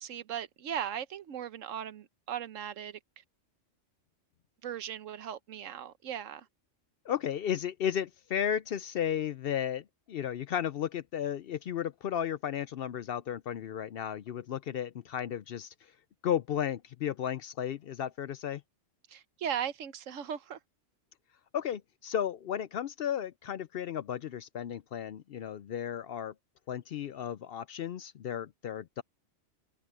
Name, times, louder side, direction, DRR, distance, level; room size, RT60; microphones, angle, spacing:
voice 1, 0.0-3.0 4.6-6.5 19.1-20.6, right 9 dB, 85° right, 1.2 m, -38 dB
voice 2, 7.1-15.7 16.2-18.6 21.5-26.3 26.7-29.0, left 9 dB, 60° left, 0.7 m, -34 dB
omnidirectional pair, 1.3 m